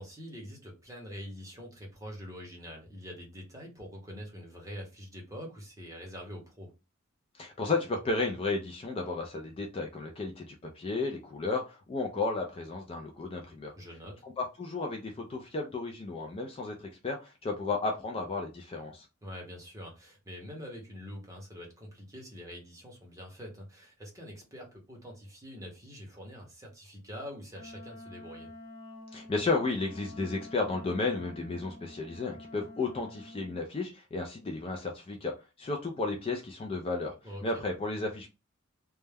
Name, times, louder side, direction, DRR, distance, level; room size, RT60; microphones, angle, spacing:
voice 1, 0.0-6.7 13.7-14.2 19.2-28.5 37.2-37.4, equal, 15° right, 0.8 m, -45 dB
voice 2, 7.4-13.7 14.2-19.1 29.1-37.1 37.4-38.3, left 3 dB, 25° left, 0.3 m, -33 dB
Wind instrument woodwind instrument, 27.5-33.6, left 1 dB, 80° left, 1.0 m, -48 dB
2.2 x 2.1 x 3.3 m
head